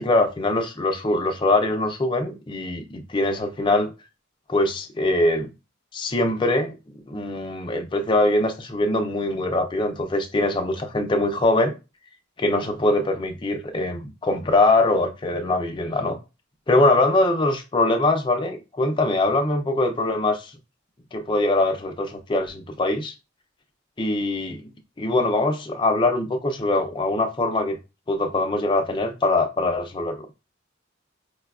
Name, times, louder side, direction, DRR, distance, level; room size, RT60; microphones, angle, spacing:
voice 1, 0.0-3.9 4.5-5.5 5.9-6.7 7.1-11.7 12.4-16.2 16.7-20.5 21.1-23.1 24.0-24.6 25.0-27.8 28.1-30.3, left 2 dB, 25° left, 0.4 m, -22 dB
4.8 x 2.2 x 2.3 m
head